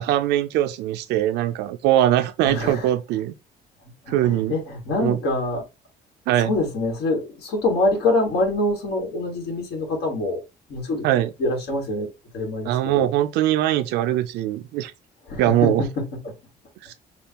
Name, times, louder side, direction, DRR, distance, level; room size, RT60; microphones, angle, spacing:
voice 1, 0.0-3.3 4.1-4.5 5.0-5.2 6.3-6.5 11.0-11.3 12.7-14.9 15.4-15.8 16.8-16.9, right 13 dB, 85° right, 0.5 m, -21 dB
voice 2, 2.4-2.9 4.1-5.6 6.4-10.4 10.7-11.1 11.4-13.1 15.3-16.3, left 2 dB, 75° left, 1.8 m, -25 dB
6.8 x 2.4 x 2.9 m
cardioid pair, 110°, 17 cm